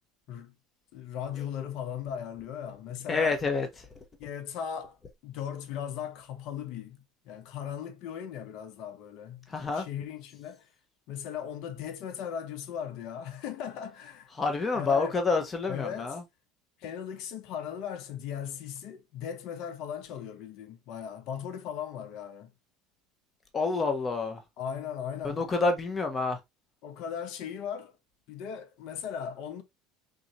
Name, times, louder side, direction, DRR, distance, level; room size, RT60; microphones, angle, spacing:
voice 1, 0.9-3.4 4.2-5.0 5.2-10.7 11.1-14.3 14.7-15.2 15.7-16.2 16.8-22.5 24.6-25.4 26.8-27.9 28.3-29.6, left 8 dB, 60° left, 0.8 m, -38 dB
voice 2, 3.1-3.7 9.5-9.9 14.4-16.2 23.5-24.4 25.2-26.4, left 4 dB, 25° left, 1.0 m, -28 dB
3.9 x 2.7 x 2.9 m
hypercardioid pair, 80°, 0 cm